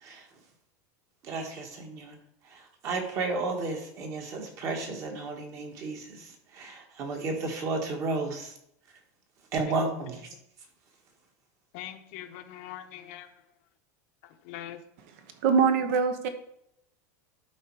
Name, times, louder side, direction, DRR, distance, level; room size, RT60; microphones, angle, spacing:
voice 1, 1.2-2.2 2.5-8.5 9.5-10.2, right 3 dB, 35° right, 3 dB, 1.7 m, -33 dB
voice 2, 11.7-13.3 14.2-14.8, left 12 dB, 55° left, 7 dB, 0.9 m, -42 dB
voice 3, 15.4-16.3, right 6 dB, 60° right, 8 dB, 1.1 m, -23 dB
11.5 x 4.2 x 4.7 m, 0.76 s
supercardioid pair, 165°, 9 cm